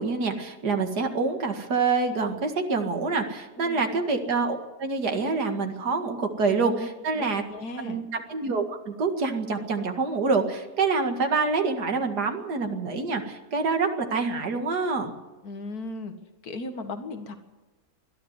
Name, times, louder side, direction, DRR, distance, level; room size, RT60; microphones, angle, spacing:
voice 1, 0.0-7.4 7.8-15.1, right 4 dB, 90° right, 5 dB, 2.6 m, -26 dB
voice 2, 6.6-8.0 15.4-16.1 16.4-17.3, left 2 dB, 70° left, 7 dB, 2.3 m, -36 dB
21.0 x 13.0 x 9.6 m, 1.2 s
omnidirectional pair, 1.7 m